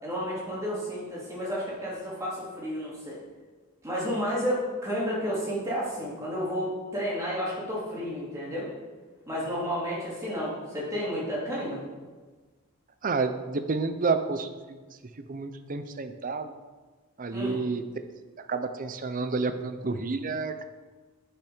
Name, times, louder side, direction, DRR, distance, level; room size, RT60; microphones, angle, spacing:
voice 1, 0.0-3.2 3.8-8.7 9.3-11.8 17.3-17.6, equal, 15° right, -7 dB, 3.0 m, -31 dB
voice 2, 13.0-16.5 17.2-17.8 18.4-20.6, right 4 dB, 35° right, 9 dB, 0.6 m, -30 dB
10.5 x 5.8 x 5.0 m, 1.3 s
head